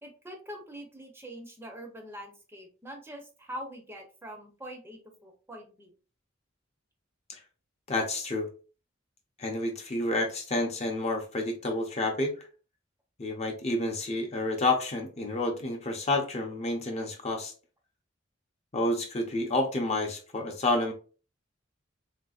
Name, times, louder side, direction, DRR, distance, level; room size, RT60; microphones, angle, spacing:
voice 1, 0.0-5.9, equal, 10° right, 2 dB, 0.6 m, -44 dB
voice 2, 7.9-8.5 9.4-12.5 13.2-17.5 18.7-20.9, left 2 dB, 35° left, 2 dB, 0.6 m, -29 dB
3.6 x 2.6 x 2.4 m, 0.35 s
head